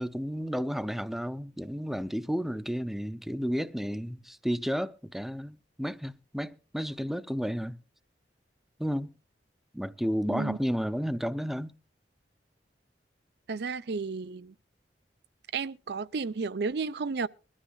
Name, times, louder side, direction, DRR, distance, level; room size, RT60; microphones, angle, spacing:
voice 1, 0.0-7.8 8.8-9.1 9.7-11.8, equal, ahead, 0.6 m, -32 dB
voice 2, 13.5-14.5 15.5-17.3, right 4 dB, 65° right, 0.5 m, -32 dB
22.5 x 13.0 x 2.3 m
head